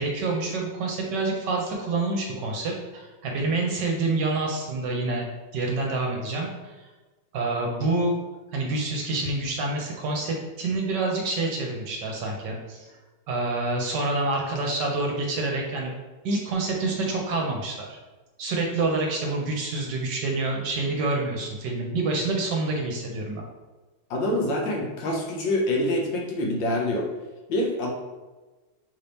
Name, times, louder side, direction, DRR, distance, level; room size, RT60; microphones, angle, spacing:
voice 1, 0.0-5.3 5.5-6.8 7.3-8.2 8.5-12.9 13.3-15.9 16.2-18.0 18.4-23.5, right 2 dB, 65° right, 0 dB, 1.2 m, -27 dB
voice 2, 24.1-27.1 27.5-27.9, left 1 dB, 70° left, 0 dB, 1.4 m, -26 dB
5.8 x 2.7 x 3.4 m, 1.2 s
omnidirectional pair, 2.2 m